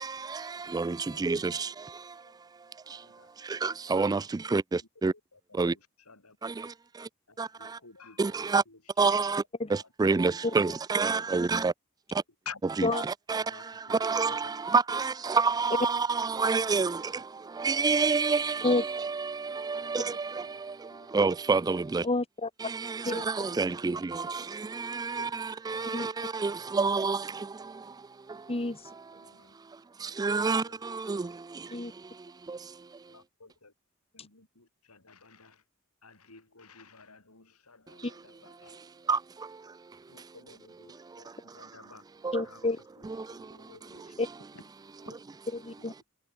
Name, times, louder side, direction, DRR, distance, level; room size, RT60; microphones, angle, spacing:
voice 1, 0.0-2.3 2.7-5.1 5.5-5.8 6.4-7.1 7.4-7.8 8.2-8.6 9.0-9.4 9.7-11.7 12.1-12.2 12.6-22.1 22.6-28.5 28.9-29.3 29.6-33.1 37.9-38.0 38.6-40.3 40.7-42.0 42.2-42.4 43.0-44.2 45.1-45.2, right 4 dB, 20° right, 0.3 m, -30 dB
voice 2, 6.1-6.7 7.3-8.8 12.5-12.6 13.5-14.0 14.3-14.6 16.6-16.7 17.1-17.2 19.8-19.9 20.4-20.6 20.9-21.1 23.4-23.8 25.2-25.3 25.7-25.9 26.2-26.3 29.2-29.5 30.2-30.3 30.7-31.3 33.1-33.7 34.1-35.6 36.0-38.8 40.1-42.0 42.4-42.6 43.4-44.1 45.0-45.2, left 6 dB, 85° left, 6.0 m, -51 dB
voice 3, 22.0-22.5 23.0-23.2 25.9-26.1 28.5-28.8 31.7-31.9 38.0-38.1 42.3-42.8 44.2-44.3 45.5-45.9, left 2 dB, 25° left, 1.3 m, -29 dB
head